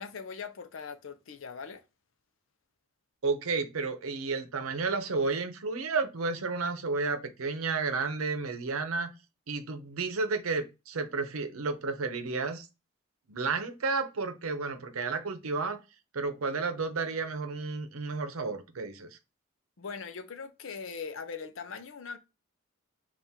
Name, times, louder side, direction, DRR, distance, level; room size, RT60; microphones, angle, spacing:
voice 1, 0.0-1.8 19.8-22.2, left 5 dB, 70° left, 0.6 m, -40 dB
voice 2, 3.2-9.1 9.5-12.7 13.3-15.8 16.1-19.2, right 4 dB, 90° right, 0.7 m, -32 dB
3.6 x 2.5 x 4.2 m
head